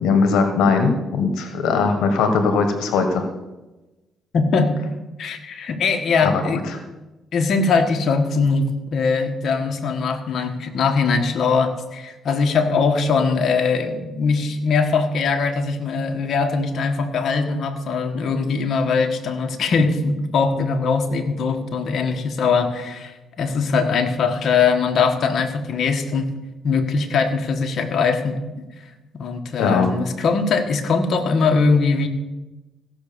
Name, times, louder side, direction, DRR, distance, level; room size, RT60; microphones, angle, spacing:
voice 1, 0.0-3.2 6.2-6.8 29.6-29.9, left 4 dB, 90° left, 6 dB, 1.4 m, -20 dB
voice 2, 4.3-4.7 5.2-6.6 7.3-8.6 8.9-26.3 26.6-28.4 29.2-32.1, left 4 dB, 60° left, 4 dB, 1.6 m, -21 dB
16.0 x 6.3 x 6.9 m, 1.1 s
cardioid pair, 90°, 0 cm